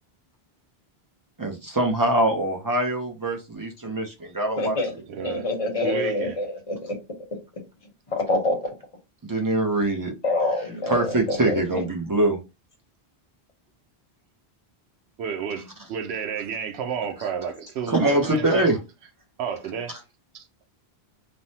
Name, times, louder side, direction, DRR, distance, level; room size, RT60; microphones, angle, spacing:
voice 1, 1.4-4.8 9.2-10.1 10.9-12.4 17.2-17.3 17.9-18.8, right 1 dB, 25° right, 0.5 m, -23 dB
voice 2, 4.6-4.9 5.2-7.0 8.1-8.6 10.2-11.8, left 2 dB, 35° left, 0.9 m, -26 dB
voice 3, 5.1-6.4 15.2-18.7 19.4-20.0 20.3-20.6, right 7 dB, 85° right, 0.9 m, -31 dB
3.3 x 2.1 x 2.7 m
omnidirectional pair, 1.1 m